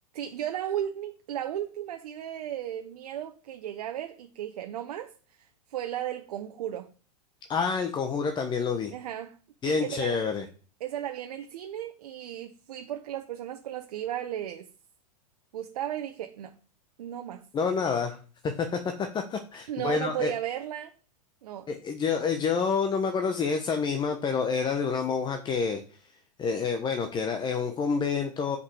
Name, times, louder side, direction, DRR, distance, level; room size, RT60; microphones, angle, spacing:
voice 1, 0.1-6.9 8.9-9.4 9.6-10.2 10.8-14.7 15.5-16.6 17.0-17.5 19.7-20.9 21.4-21.7, right 11 dB, 70° right, 1.0 m, -35 dB
voice 2, 7.5-8.9 9.6-10.5 17.5-18.2 18.4-20.3 21.7-25.8 26.4-28.6, left 5 dB, 25° left, 1.1 m, -28 dB
5.7 x 5.4 x 6.4 m
hypercardioid pair, 120°, 20 cm